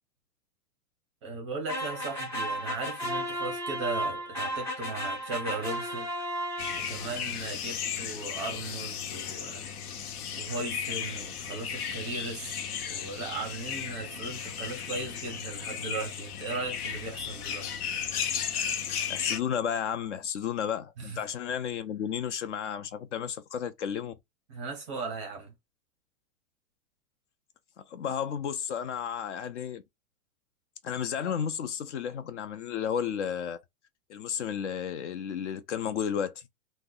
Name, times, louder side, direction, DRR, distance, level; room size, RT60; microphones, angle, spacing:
voice 1, 1.2-6.1 6.8-9.6 10.4-12.6 12.9-17.7 21.0-21.2 24.5-25.5, right 3 dB, 20° right, 0.6 m, -37 dB
sound 1, 1.7-7.2, equal, 5° left, 0.9 m, -34 dB
sound 2, 6.6-19.4, left 8 dB, 75° left, 0.8 m, -35 dB
voice 2, 19.1-24.1 27.8-29.8 30.8-33.6 34.1-36.4, left 8 dB, 50° left, 0.5 m, -32 dB
2.7 x 2.1 x 3.7 m
hypercardioid pair, 165°, 45 cm